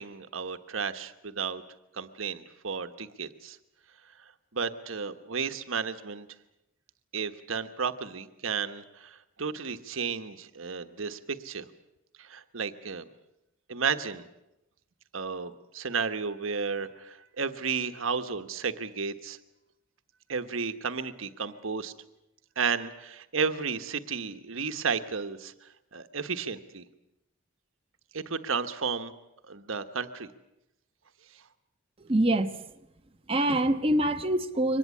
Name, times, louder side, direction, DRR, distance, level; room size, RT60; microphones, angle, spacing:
voice 1, 0.0-1.6 1.9-3.6 4.5-6.3 7.1-11.6 12.2-13.0 13.7-14.3 15.1-19.4 20.3-21.9 22.6-25.5 25.9-26.9 28.1-29.1 29.5-30.3, right 5 dB, 80° right, 1.3 m, -33 dB
voice 2, 32.0-32.6 33.3-34.8, right 1 dB, 30° right, 1.1 m, -25 dB
24.0 x 19.5 x 8.5 m
head